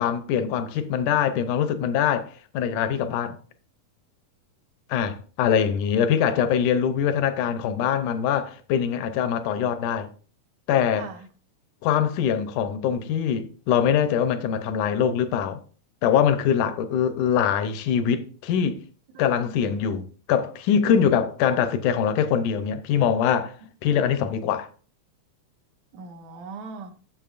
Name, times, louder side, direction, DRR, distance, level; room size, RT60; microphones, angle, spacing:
voice 1, 0.0-3.4 4.9-10.1 10.7-11.1 11.8-15.6 16.0-18.8 19.2-23.6 23.8-24.7, left 8 dB, 85° left, 2.2 m, -23 dB
voice 2, 19.2-19.8 25.9-26.9, right 4 dB, 75° right, 2.3 m, -40 dB
10.5 x 7.2 x 2.5 m
omnidirectional pair, 3.5 m